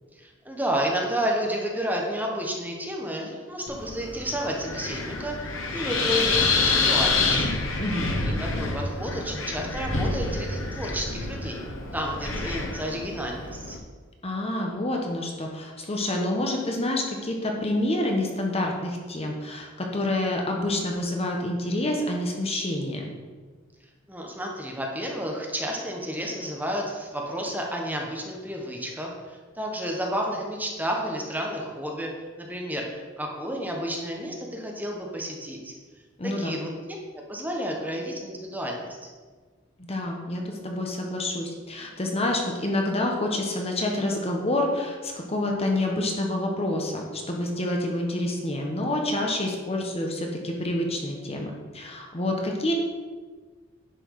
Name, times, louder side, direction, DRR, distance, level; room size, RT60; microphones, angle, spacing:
voice 1, 0.2-7.5 8.2-11.6 11.9-13.8 24.1-32.1 32.4-35.7 36.2-36.7 37.3-39.1, equal, 10° right, 0 dB, 1.3 m, -31 dB
Wind, 3.7-13.8, left 3 dB, 80° left, 1.4 m, -27 dB
voice 2, 7.8-8.1 14.2-23.0 36.2-36.6 39.8-52.7, left 1 dB, 30° left, 1 dB, 1.2 m, -28 dB
10.5 x 6.2 x 4.8 m, 1.4 s
head